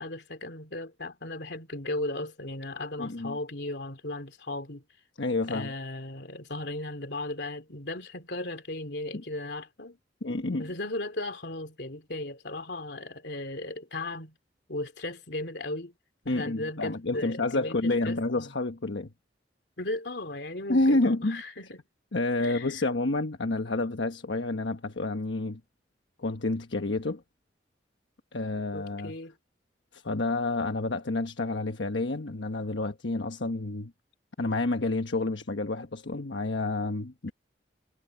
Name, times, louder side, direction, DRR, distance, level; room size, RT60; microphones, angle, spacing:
voice 1, 0.0-4.8 5.5-10.0 10.6-14.3 14.7-15.9 16.3-18.5 19.8-21.8 22.4-22.9 28.7-29.3, left 2 dB, 70° left, 3.1 m, -36 dB
voice 2, 3.0-3.4 5.2-5.7 9.1-9.2 10.2-10.7 16.3-19.1 20.7-21.4 22.1-25.6 26.2-27.2 28.3-29.1 29.9-33.9 34.4-37.3, left 2 dB, 85° left, 1.2 m, -29 dB
head